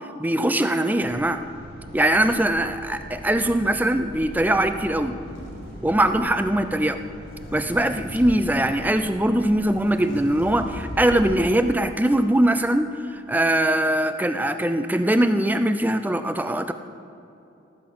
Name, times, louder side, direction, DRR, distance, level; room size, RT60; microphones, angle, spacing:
voice 1, 0.2-1.4 1.9-5.1 5.8-7.0 7.5-16.7, right 1 dB, 10° right, 9 dB, 0.5 m, -21 dB
sound 1, 1.0-11.4, equal, 50° right, 2.8 m, -41 dB
sound 2, 5.2-6.4 7.0-8.4 9.2-9.3 9.5-11.6, equal, 85° left, 2.2 m, -39 dB
18.0 x 8.3 x 6.3 m, 2.8 s
head